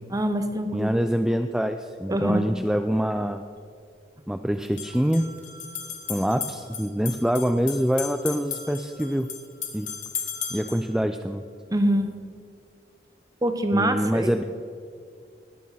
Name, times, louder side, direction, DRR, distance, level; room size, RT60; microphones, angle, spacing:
voice 1, 0.1-0.9 2.1-2.4 11.7-12.1 13.4-14.3, right 1 dB, 20° right, 8 dB, 1.0 m, -24 dB
voice 2, 0.7-3.4 4.3-5.3 6.1-9.3 9.7-9.9 10.5-11.4 13.7-14.4, equal, 5° right, 7 dB, 0.4 m, -25 dB
sound 1, 3.0-3.1 4.6-10.9, left 7 dB, 45° left, 1.8 m, -36 dB
20.0 x 8.6 x 5.8 m, 2.2 s
head